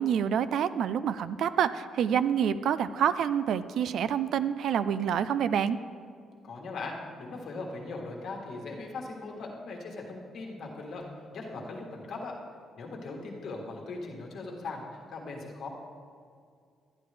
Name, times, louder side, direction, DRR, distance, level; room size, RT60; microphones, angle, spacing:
voice 1, 0.0-5.8, right 8 dB, 60° right, 14 dB, 0.3 m, -27 dB
voice 2, 6.4-12.3 12.8-15.7, left 3 dB, 50° left, 0 dB, 1.5 m, -39 dB
11.5 x 10.5 x 3.4 m, 2.2 s
cardioid pair, 165°, 0 cm